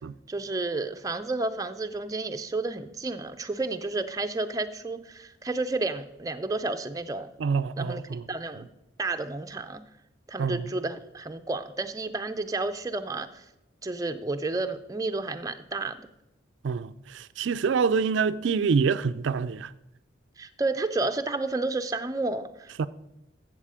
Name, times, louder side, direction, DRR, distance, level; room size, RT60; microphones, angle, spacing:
voice 1, 0.3-7.3 7.8-8.0 8.3-8.6 9.0-9.8 10.3-13.4 13.8-16.1 20.4-22.9, right 3 dB, 20° right, 0.4 m, -31 dB
voice 2, 7.4-8.2 10.4-10.6 16.6-19.7 22.8-22.9, right 5 dB, 75° right, 0.4 m, -26 dB
13.0 x 7.4 x 4.9 m
head